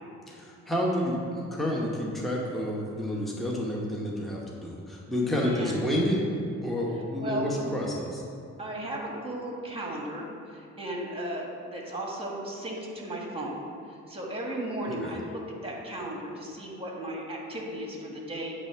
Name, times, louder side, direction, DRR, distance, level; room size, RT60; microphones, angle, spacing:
voice 1, 0.3-6.3 6.6-8.2 15.0-15.2, left 1 dB, ahead, -3 dB, 0.9 m, -29 dB
voice 2, 8.6-13.6 13.8-18.5, right 1 dB, 20° right, -1 dB, 1.5 m, -35 dB
8.7 x 3.3 x 5.6 m, 2.4 s
cardioid pair, 90°, 30 cm